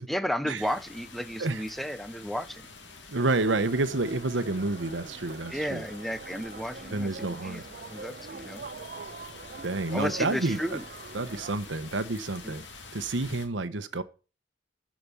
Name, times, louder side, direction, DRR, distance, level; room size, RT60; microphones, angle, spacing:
voice 1, 0.1-2.7 5.5-8.7 9.9-10.8 12.4-12.6, equal, ahead, 0.5 m, -33 dB
sound 1, 0.5-13.5, left 4 dB, 75° left, 2.2 m, -47 dB
voice 2, 3.1-5.8 6.9-7.6 9.6-10.8 11.1-12.6 12.9-14.0, right 2 dB, 80° right, 1.0 m, -29 dB
sound 2, 3.2-11.6, right 4 dB, 55° right, 0.7 m, -44 dB
13.5 x 5.2 x 7.0 m
head